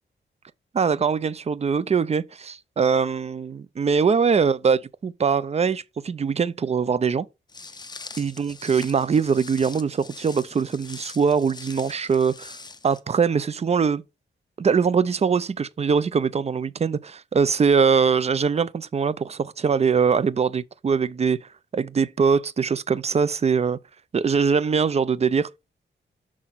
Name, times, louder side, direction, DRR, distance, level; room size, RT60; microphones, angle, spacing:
voice 1, 0.7-7.3 8.2-12.6 12.8-14.0 14.6-21.4 21.7-23.8 24.1-25.5, right 6 dB, 35° right, 0.4 m, -22 dB
Walk footsteps, 7.5-13.0, left 3 dB, 20° left, 0.6 m, -42 dB
6.2 x 5.9 x 4.1 m
wide cardioid pair, 150°, 20 cm